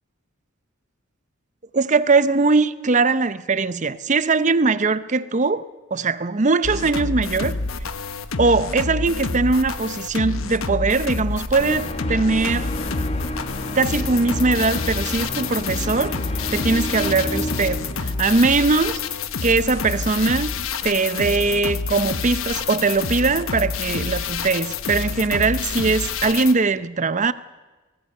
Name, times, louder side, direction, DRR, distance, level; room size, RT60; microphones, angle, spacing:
voice 1, 1.7-5.7 5.9-7.6 8.4-12.7 13.7-16.2 16.5-19.0 19.4-20.5 20.8-27.3, right 3 dB, 35° right, 0.7 m, -21 dB
sound 1, 6.6-26.5, left 4 dB, 80° left, 1.1 m, -28 dB
sound 2, 11.6-19.2, left 1 dB, 30° left, 1.2 m, -31 dB
24.0 x 18.5 x 6.6 m
head